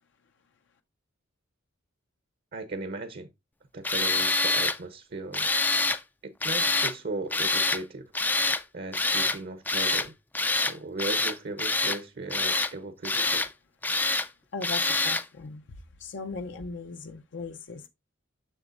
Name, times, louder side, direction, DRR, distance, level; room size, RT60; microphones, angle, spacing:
voice 1, 2.5-3.3 3.7-5.5 6.2-8.1 8.7-10.1 10.5-13.4, right 2 dB, 50° right, 0.7 m, -37 dB
Tools, 3.8-4.8 5.3-6.0 6.4-6.9 7.3-7.8 8.1-8.6 8.9-9.4 9.7-10.1 10.4-10.7 11.0-12.0 12.3-12.7 13.0-13.5 13.8-14.3 14.6-15.2, left 3 dB, 10° left, 0.3 m, -26 dB
voice 2, 14.5-17.9, left 4 dB, 60° left, 0.5 m, -38 dB
7.1 x 6.5 x 2.5 m
head